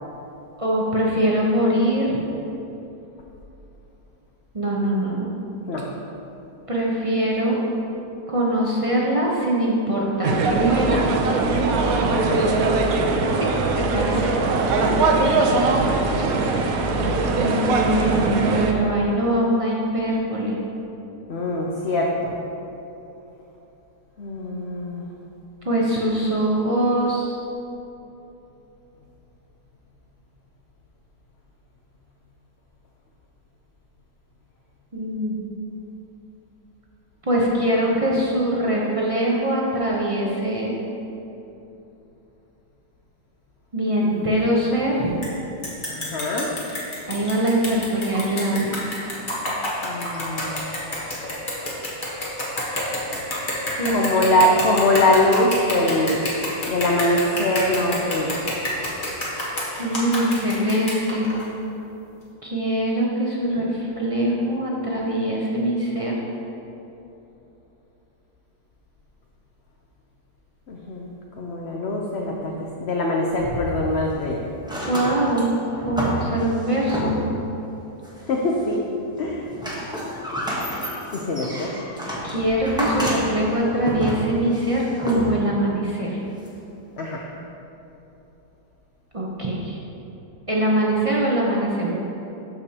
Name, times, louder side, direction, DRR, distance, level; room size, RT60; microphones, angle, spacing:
voice 1, 0.6-2.1 4.5-5.3 6.7-7.6 8.3-11.0 13.3-13.5 13.8-14.3 17.4-20.6 25.6-27.4 34.9-35.4 37.2-40.7 43.7-45.1 47.1-48.7 53.8-54.0 59.8-61.3 62.4-66.1 74.9-75.5 75.8-77.2 82.2-86.2 89.1-89.8 90.5-91.9, right 1 dB, 45° right, -4 dB, 0.4 m, -22 dB
sound 1, 10.2-18.7, right 3 dB, 65° right, 1.0 m, -21 dB
voice 2, 12.1-12.4 14.9-15.0 21.3-22.4 24.2-25.0 44.0-44.3 45.9-46.5 49.8-50.7 53.9-56.2 56.7-58.4 70.7-71.1 71.4-72.5 72.8-74.5 78.3-78.9 79.2-79.5 81.1-81.7 87.0-87.3, left 1 dB, 65° left, -1 dB, 0.6 m, -23 dB
sound 2, 45.2-45.3 45.6-61.5, left 1 dB, 30° left, 1.3 m, -29 dB
sound 3, 73.3-74.2 74.6-77.5 78.0-78.8 79.1-85.6 86.4-86.5, equal, 5° right, 0.7 m, -30 dB
12.5 x 5.0 x 2.8 m, 2.9 s
omnidirectional pair, 1.9 m